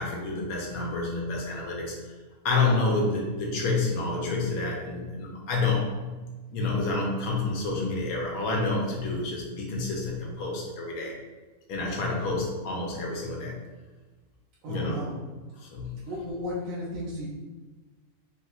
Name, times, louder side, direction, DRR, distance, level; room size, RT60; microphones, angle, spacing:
voice 1, 0.0-2.1 2.4-6.0 6.5-11.2 11.7-13.6 14.6-15.0 15.6-16.0, left 3 dB, 70° left, -1 dB, 1.0 m, -29 dB
voice 2, 14.6-15.2 16.1-17.3, equal, 65° right, -7 dB, 1.0 m, -34 dB
3.4 x 2.8 x 2.3 m, 1.3 s
omnidirectional pair, 1.7 m